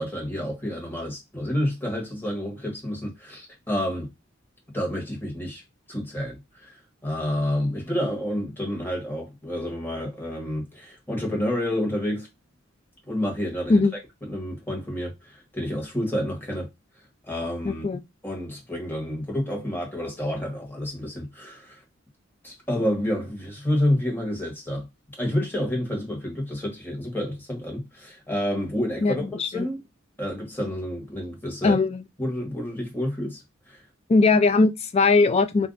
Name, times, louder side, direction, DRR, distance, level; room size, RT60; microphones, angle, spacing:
voice 1, 0.0-4.1 4.7-5.6 5.9-6.8 7.0-12.3 13.1-13.8 14.2-16.7 17.3-17.8 18.2-21.8 22.4-24.9 25.2-29.8 30.2-31.8 32.2-33.4 33.7-33.8, left 1 dB, 10° left, 1.2 m, -29 dB
voice 2, 17.6-18.0 29.0-29.7 31.6-32.0 34.1-35.7, left 3 dB, 30° left, 0.4 m, -20 dB
2.5 x 2.2 x 3.8 m
head